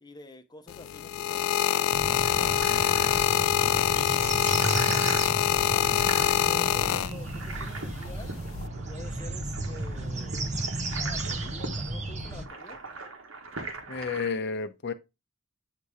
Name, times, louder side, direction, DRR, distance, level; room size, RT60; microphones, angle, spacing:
voice 1, 0.0-2.3 6.4-8.3 8.9-10.5 10.9-12.8, left 1 dB, 20° left, 0.8 m, -48 dB
sound 1, 0.7-7.5 8.4-8.7, left 11 dB, 85° left, 0.3 m, -25 dB
sound 2, 1.9-12.5, right 2 dB, 35° right, 0.7 m, -34 dB
sound 3, 2.0-14.4, right 3 dB, 85° right, 1.4 m, -42 dB
voice 2, 3.6-4.1 13.9-14.9, left 5 dB, 60° left, 0.7 m, -33 dB
8.3 x 2.8 x 4.7 m
head